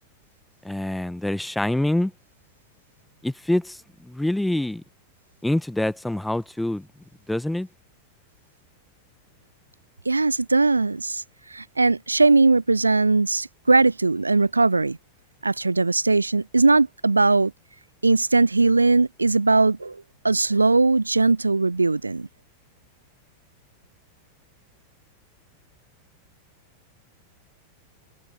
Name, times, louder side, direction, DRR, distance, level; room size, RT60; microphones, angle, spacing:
voice 1, 0.6-2.1 3.2-4.8 5.4-6.9 7.3-7.7, left 1 dB, 5° left, 1.5 m, -25 dB
voice 2, 10.1-11.2 11.5-15.0 15.4-17.5 18.0-22.3, right 3 dB, 80° right, 0.6 m, -20 dB
figure-of-eight pair, 90°, 0 cm